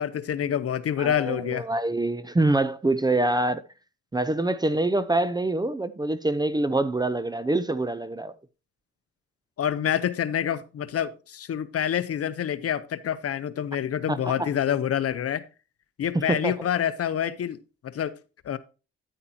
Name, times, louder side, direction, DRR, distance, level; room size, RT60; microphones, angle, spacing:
voice 1, 0.0-1.7 9.6-15.4 16.0-17.6 17.8-18.1 18.4-18.6, left 9 dB, 50° left, 0.8 m, -27 dB
voice 2, 1.0-3.6 4.1-8.3 14.1-14.5 16.3-16.5, right 2 dB, 15° right, 0.6 m, -25 dB
10.0 x 8.9 x 2.8 m
cardioid pair, 90°, 30 cm